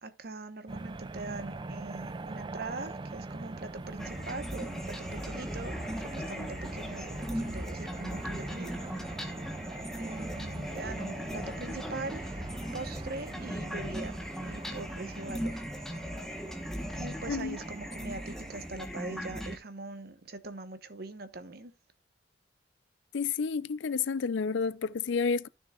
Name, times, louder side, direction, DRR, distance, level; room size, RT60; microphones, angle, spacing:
voice 1, 0.0-9.1 10.0-12.5 12.7-15.6 17.0-21.7, right 3 dB, 55° right, 1.0 m, -42 dB
sound 1, 0.7-18.7, right 3 dB, 25° right, 0.4 m, -43 dB
sound 2, 4.0-19.6, equal, ahead, 1.0 m, -38 dB
voice 2, 17.3-17.6 23.1-25.5, left 5 dB, 75° left, 0.5 m, -30 dB
12.5 x 6.5 x 2.3 m
head